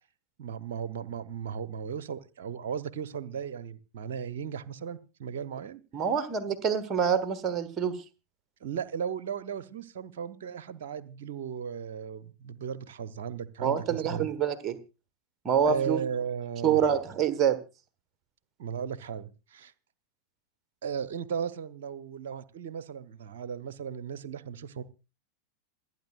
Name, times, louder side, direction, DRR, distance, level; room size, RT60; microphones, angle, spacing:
voice 1, 0.4-5.8 8.6-14.3 15.6-16.8 18.6-19.7 20.8-24.8, right 7 dB, 55° right, 14 dB, 0.8 m, -36 dB
voice 2, 5.9-8.0 13.6-14.7 15.4-16.0 16.6-17.6, right 8 dB, 30° right, 11 dB, 1.3 m, -26 dB
27.5 x 9.6 x 2.4 m, 0.32 s
figure-of-eight pair, 90°, 0 cm